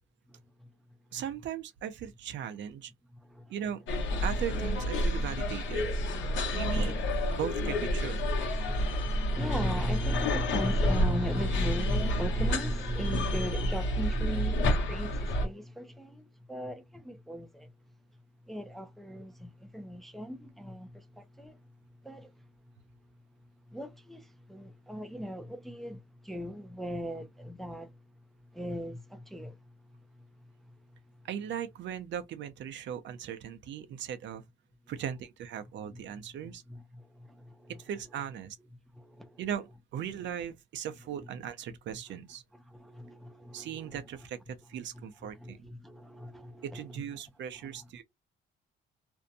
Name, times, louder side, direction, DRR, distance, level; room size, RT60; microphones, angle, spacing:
voice 1, 1.1-2.9 3.5-3.8 4.2-5.9 6.5-7.0 7.3-8.2 31.2-34.4 34.9-36.6 37.8-38.6 39.4-42.4 43.5-45.6 46.6-48.0, right 9 dB, 70° right, 0.5 m, -38 dB
sound 1, 3.9-15.5, equal, 70° left, 0.9 m, -29 dB
voice 2, 6.4-6.9 8.6-17.7 18.5-21.6 22.0-22.3 23.7-27.9 28.5-29.6 36.1-36.2 36.7-37.7 39.0-39.4 42.7-44.0 45.4-47.0 47.6-47.7, equal, ahead, 0.4 m, -38 dB
2.6 x 2.1 x 2.5 m
cardioid pair, 90°, 20 cm